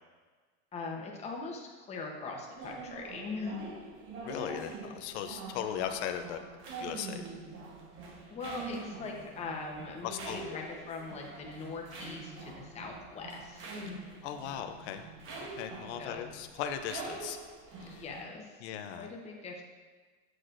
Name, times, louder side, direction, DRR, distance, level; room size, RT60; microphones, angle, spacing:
voice 1, 0.7-3.7 8.3-14.0 16.0-16.3 17.8-19.6, left 4 dB, 20° left, 0 dB, 0.9 m, -41 dB
sound 1, 2.5-18.2, right 3 dB, 40° right, 1.1 m, -45 dB
voice 2, 4.2-6.4 6.8-7.2 10.0-10.6 14.2-15.1 15.5-17.4 17.8-18.0 18.6-19.1, left 9 dB, 85° left, 7 dB, 0.6 m, -38 dB
7.9 x 6.2 x 2.5 m, 1.4 s
supercardioid pair, 150°, 33 cm